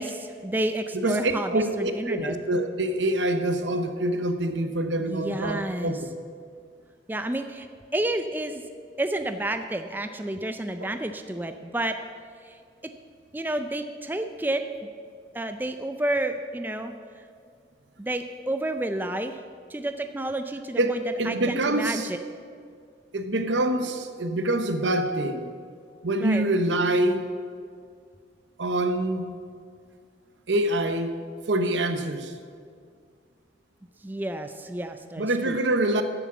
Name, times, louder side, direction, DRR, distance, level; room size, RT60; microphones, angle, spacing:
voice 1, 0.0-2.4 5.0-6.0 7.1-7.7 7.9-8.6 9.0-12.0 12.4-12.6 13.3-14.6 15.3-16.9 18.0-19.4 19.7-22.2 26.2-26.4 34.0-35.6, right 1 dB, 10° right, 7 dB, 0.4 m, -30 dB
voice 2, 0.9-6.0 20.8-22.1 23.1-25.5 26.0-27.2 28.6-29.3 30.5-31.1 31.5-32.3 35.2-36.0, right 1 dB, 80° right, 8 dB, 0.9 m, -25 dB
11.0 x 7.1 x 7.3 m, 2.1 s
head